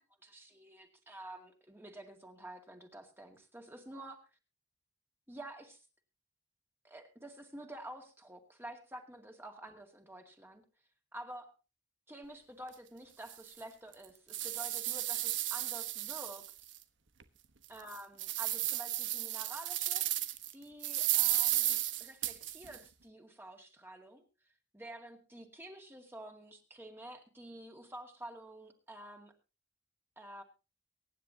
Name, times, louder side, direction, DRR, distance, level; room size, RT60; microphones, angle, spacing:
voice 1, 0.0-4.2 5.3-5.8 6.8-10.6 11.1-11.5 12.1-16.7 17.7-20.1 20.5-24.2 24.7-29.3 30.2-30.4, right 1 dB, 10° right, 3 dB, 2.1 m, -49 dB
sound 1, 12.7-12.8 13.3-13.4 13.9-16.8 17.2-17.3 17.8-20.5 20.8-22.8, right 14 dB, 90° right, 1.2 m, -33 dB
24.0 x 10.0 x 2.8 m, 0.29 s
head